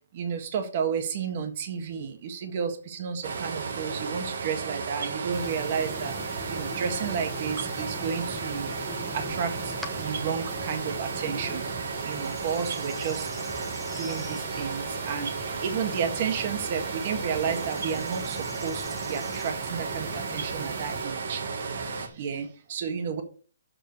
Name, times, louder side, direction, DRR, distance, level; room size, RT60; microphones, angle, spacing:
voice 1, 0.1-6.1 6.5-8.7 9.1-11.7 12.0-13.3 14.0-21.4 21.9-23.2, right 7 dB, 45° right, 7 dB, 1.5 m, -32 dB
sound 1, 3.2-22.1, right 4 dB, 65° right, 1.6 m, -33 dB
sound 2, 5.3-21.1, left 1 dB, ahead, 0.9 m, -43 dB
7.5 x 5.0 x 6.8 m, 0.38 s
hypercardioid pair, 155°, 0 cm